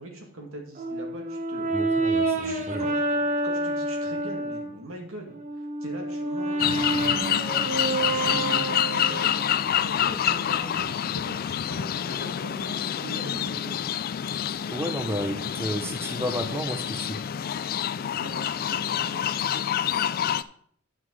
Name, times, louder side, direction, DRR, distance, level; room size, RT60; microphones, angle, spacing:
voice 1, 0.0-2.1 2.3-5.3 5.8-7.7 8.1-13.8 18.2-19.2, right 1 dB, 70° right, 2 dB, 2.2 m, -41 dB
Brass instrument, 0.8-4.7 5.3-9.4, right 2 dB, 40° right, 1.1 m, -28 dB
voice 2, 1.7-2.9 14.7-17.2, equal, 10° right, 5 dB, 0.7 m, -32 dB
sound 1, 6.6-20.4, left 9 dB, 45° left, 0.3 m, -27 dB
9.7 x 5.8 x 4.8 m, 0.63 s
head